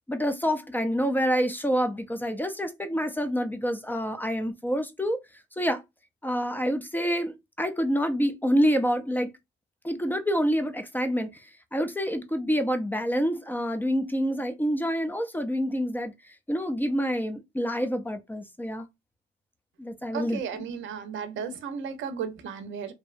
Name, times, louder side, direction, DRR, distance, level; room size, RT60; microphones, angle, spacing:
voice 1, 0.1-5.2 5.6-5.8 6.2-9.3 9.8-16.1 16.5-18.9 19.8-20.4, equal, 10° left, 0.5 m, -27 dB
voice 2, 20.1-22.9, right 6 dB, 75° right, 0.6 m, -34 dB
2.7 x 2.0 x 2.4 m
cardioid pair, 90°, 20 cm